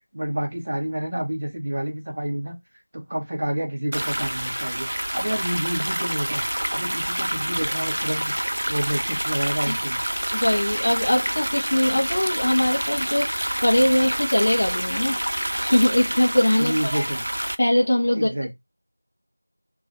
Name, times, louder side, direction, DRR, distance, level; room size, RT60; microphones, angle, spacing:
voice 1, 0.1-2.5 2.9-6.4 6.7-8.3 8.7-10.0 16.6-17.2 18.1-18.5, right 1 dB, 30° right, 0.8 m, -28 dB
sound 1, 3.9-17.5, right 1 dB, 50° right, 0.4 m, -27 dB
voice 2, 10.3-15.2 15.6-17.0 17.6-18.4, left 1 dB, 20° left, 0.6 m, -21 dB
3.0 x 2.3 x 4.0 m
figure-of-eight pair, 175°, 0 cm